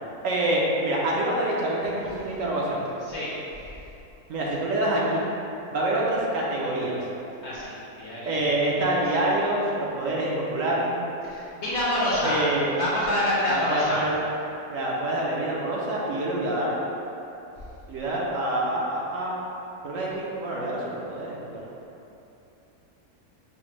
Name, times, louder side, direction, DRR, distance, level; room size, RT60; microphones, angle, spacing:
voice 1, 0.2-2.8 4.3-5.2 5.7-7.0 8.2-10.9 12.2-12.7 13.5-14.2 14.7-16.8 17.9-19.4 19.8-21.7, right 1 dB, 70° right, -5 dB, 1.0 m, -26 dB
voice 2, 7.4-8.4 8.7-9.0 11.2-12.4 12.8-14.0, left 1 dB, 55° left, -7 dB, 0.9 m, -27 dB
5.8 x 2.1 x 3.0 m, 2.9 s
omnidirectional pair, 1.5 m